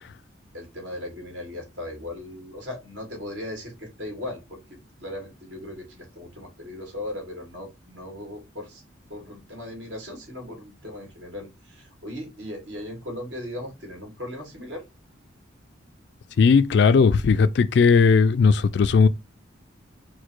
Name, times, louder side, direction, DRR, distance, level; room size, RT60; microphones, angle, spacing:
voice 1, 0.5-8.8 9.1-14.9, left 1 dB, 70° right, 1.8 m, -38 dB
voice 2, 16.4-19.1, left 5 dB, 55° left, 0.3 m, -17 dB
4.5 x 2.1 x 4.4 m
head